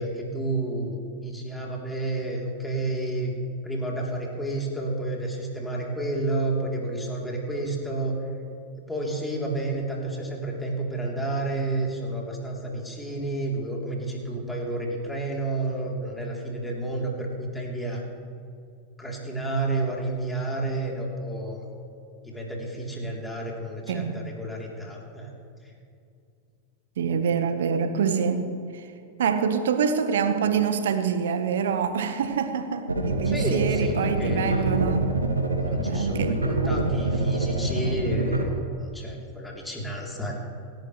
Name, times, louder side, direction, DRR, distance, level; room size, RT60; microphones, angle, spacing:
voice 1, 0.0-3.3 3.6-8.2 8.9-18.0 19.0-21.6 22.2-25.3 33.2-34.7 35.6-38.5 38.8-40.4, right 2 dB, 5° left, -2 dB, 3.5 m, -30 dB
voice 2, 23.9-24.2 27.0-28.9 29.2-35.1 35.9-36.4, right 6 dB, 60° right, 9 dB, 1.3 m, -26 dB
sound 1, 32.9-38.4, right 2 dB, 80° right, 1.8 m, -26 dB
28.5 x 12.0 x 3.3 m, 2.4 s
figure-of-eight pair, 90°, 0 cm